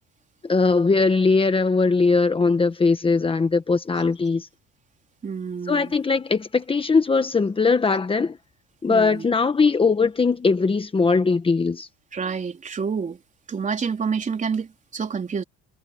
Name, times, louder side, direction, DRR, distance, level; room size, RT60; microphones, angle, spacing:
voice 1, 0.4-4.5 5.7-8.4 8.8-11.9, left 4 dB, 20° left, 1.4 m, -20 dB
voice 2, 5.2-6.0 8.9-9.2 12.1-13.2 13.5-15.4, right 6 dB, 25° right, 3.8 m, -28 dB
cardioid pair, 140°, 29 cm